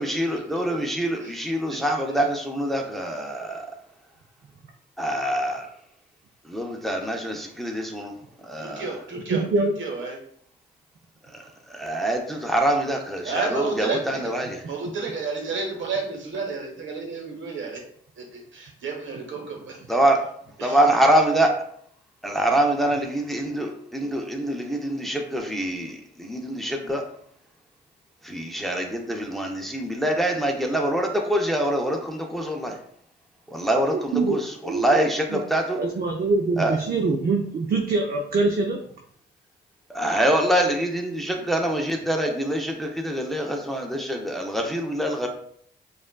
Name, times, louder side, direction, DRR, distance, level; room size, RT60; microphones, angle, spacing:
voice 1, 0.0-3.8 5.0-5.7 6.4-9.0 11.2-14.6 19.9-20.2 20.6-21.5 22.2-27.0 28.2-32.8 33.5-35.8 36.6-36.8 39.9-45.3, right 1 dB, ahead, 1 dB, 0.7 m, -25 dB
voice 2, 8.6-9.5 9.8-10.2 13.2-14.2 14.7-17.8 18.2-19.6 20.6-20.8, right 4 dB, 70° right, 0 dB, 1.1 m, -31 dB
voice 3, 9.3-9.7 34.1-34.8 35.3-35.4 35.8-38.8, right 3 dB, 50° right, 2 dB, 0.6 m, -24 dB
5.0 x 2.4 x 2.2 m, 0.63 s
cardioid pair, 60°, 21 cm